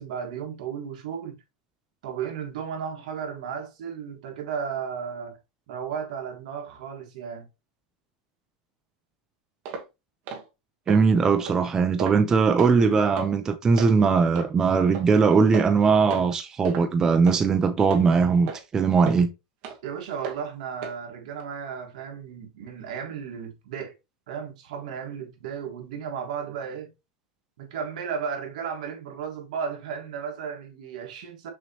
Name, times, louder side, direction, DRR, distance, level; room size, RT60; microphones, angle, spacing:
voice 1, 0.0-1.4 2.0-5.4 5.7-7.4 19.8-23.9 24.3-26.9 27.6-31.5, right 7 dB, 75° right, 1.6 m, -34 dB
sound 1, 9.7-9.9 10.3-10.4 10.9-11.0 11.5-11.6 12.0-12.2 12.6-12.8 13.2-13.3 13.8-13.9 14.4-14.5 14.9-15.1 15.5-15.8 16.1-16.3 16.6-16.8 17.3-17.4 17.9-18.0 18.5-18.6 19.0-19.2 19.6-19.8 20.2-20.4 20.8-21.0 21.4-21.5, right 4 dB, 40° right, 1.2 m, -34 dB
voice 2, 10.9-19.3, right 5 dB, 15° right, 0.4 m, -20 dB
6.1 x 3.0 x 2.8 m
supercardioid pair, 165°, 4 cm